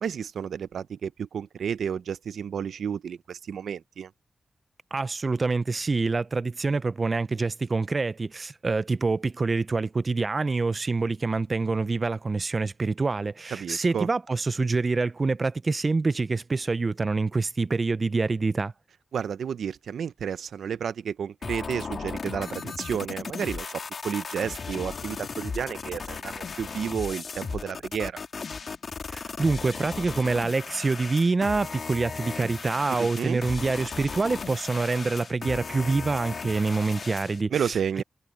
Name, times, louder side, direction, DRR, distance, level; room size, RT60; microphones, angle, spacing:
voice 1, 0.0-4.1 13.5-14.1 19.1-28.2 33.0-33.4 37.5-38.0, right 7 dB, 90° right, 0.7 m, -31 dB
voice 2, 4.9-18.7 29.1-37.7, right 3 dB, 40° right, 0.5 m, -26 dB
sound 1, 21.4-37.4, left 5 dB, 60° left, 1.9 m, -36 dB
cardioid pair, 75°, 0 cm